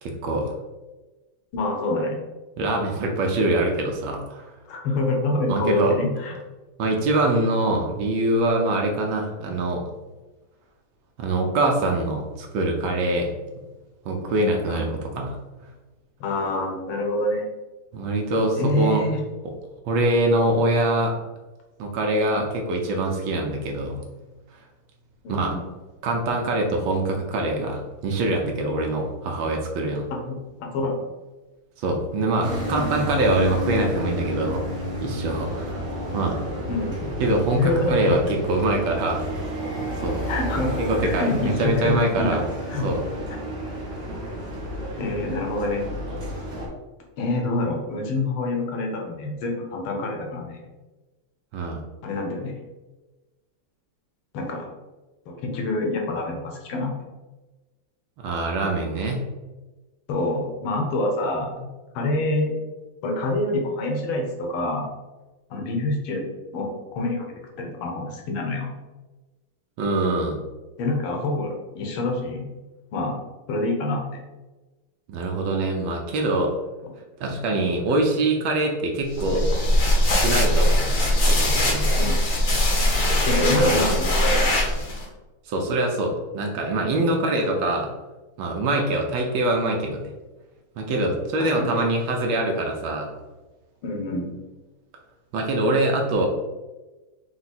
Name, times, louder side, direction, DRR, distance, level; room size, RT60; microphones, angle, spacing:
voice 1, 0.0-0.5 2.6-4.5 5.5-6.0 6.8-9.8 11.2-13.3 14.1-15.4 17.9-19.0 19.9-21.1 21.8-24.0 25.3-25.6 26.0-30.0 31.8-34.6 35.0-35.8 36.1-36.4 37.2-39.2 40.0-40.2 40.8-42.4 42.8-43.0 51.5-51.8 58.2-59.2 69.8-70.4 75.1-76.5 77.2-79.5 80.1-80.9 81.3-81.9 83.5-83.9 85.5-87.9 88.4-90.1 90.8-93.1 95.3-96.3, right 2 dB, 70° right, 2 dB, 1.3 m, -24 dB
voice 2, 1.5-2.2 4.7-6.4 14.7-14.9 16.2-17.4 18.6-19.2 25.2-25.6 30.1-31.0 36.7-37.1 37.5-38.1 40.3-42.4 42.7-42.9 45.0-45.9 47.2-50.6 52.0-52.6 54.3-54.7 55.3-56.9 60.1-61.7 61.9-62.5 63.0-64.9 65.5-66.2 66.5-68.7 70.8-72.5 72.9-73.2 73.5-74.2 82.0-82.2 83.2-84.5 91.1-91.8 93.8-94.4, left 2 dB, 75° left, 1 dB, 1.7 m, -26 dB
sound 1, 32.4-46.7, equal, 45° right, 1.1 m, -30 dB
sound 2, 79.1-85.0, left 1 dB, 55° left, 1.0 m, -21 dB
4.7 x 2.2 x 4.1 m, 1.2 s
omnidirectional pair, 2.4 m